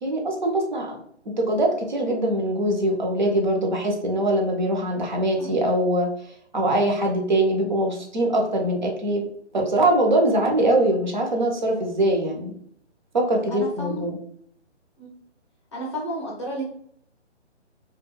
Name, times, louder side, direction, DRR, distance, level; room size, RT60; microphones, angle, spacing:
voice 1, 0.0-1.0 1.4-6.1 6.5-9.2 9.5-12.5 13.1-14.2, right 1 dB, 40° right, 1 dB, 0.6 m, -22 dB
voice 2, 13.5-14.1 15.0-15.2 15.7-16.6, right 1 dB, 25° left, -3 dB, 0.6 m, -32 dB
2.3 x 2.0 x 3.0 m, 0.65 s
figure-of-eight pair, 140°, 35 cm